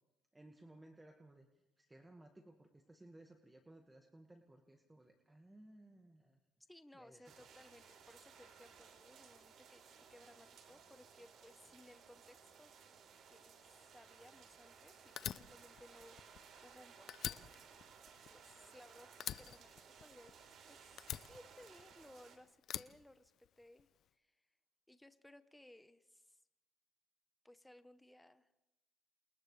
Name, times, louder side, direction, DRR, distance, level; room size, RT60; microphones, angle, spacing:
voice 1, 0.3-1.5 1.8-6.4 6.9-7.3, right 1 dB, 10° right, 3 dB, 1.8 m, -60 dB
voice 2, 6.7-12.7 13.3-17.5 18.3-19.7 20.0-24.5 24.9-26.4 27.4-28.6, left 1 dB, 5° left, 10 dB, 1.0 m, -62 dB
sound 1, 7.2-22.4, right 6 dB, 60° right, 3.9 m, -60 dB
Fire, 15.2-16.8 17.1-18.8 19.2-20.5 21.0-22.1 22.6-23.8, left 10 dB, 60° left, 0.7 m, -45 dB
29.5 x 28.0 x 3.4 m, 0.97 s
supercardioid pair, 90°, 0 cm